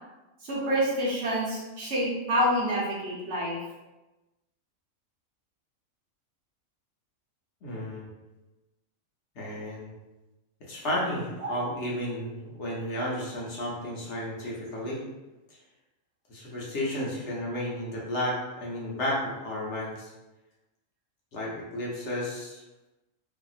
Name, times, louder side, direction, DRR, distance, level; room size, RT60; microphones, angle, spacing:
voice 1, 0.5-3.6 11.4-11.5, equal, 60° right, -5 dB, 0.9 m, -27 dB
voice 2, 7.6-8.1 9.4-9.9 10.6-15.0 16.3-20.1 21.3-22.6, left 1 dB, 65° left, -5 dB, 0.9 m, -32 dB
2.8 x 2.5 x 2.4 m, 1.0 s
omnidirectional pair, 1.4 m